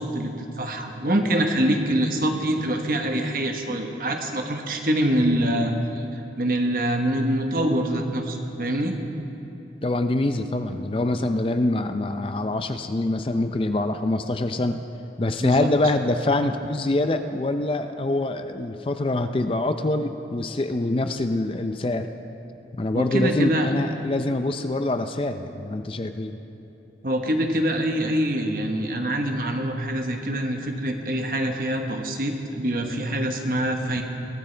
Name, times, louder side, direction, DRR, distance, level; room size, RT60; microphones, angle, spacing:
voice 1, 0.0-6.0 6.4-8.9 15.4-15.7 22.9-23.7 27.0-34.0, right 1 dB, 55° right, 3 dB, 1.2 m, -25 dB
voice 2, 9.8-14.8 15.2-22.1 22.7-26.4, left 2 dB, 30° left, 8 dB, 0.4 m, -25 dB
22.0 x 13.5 x 3.3 m, 2.9 s
head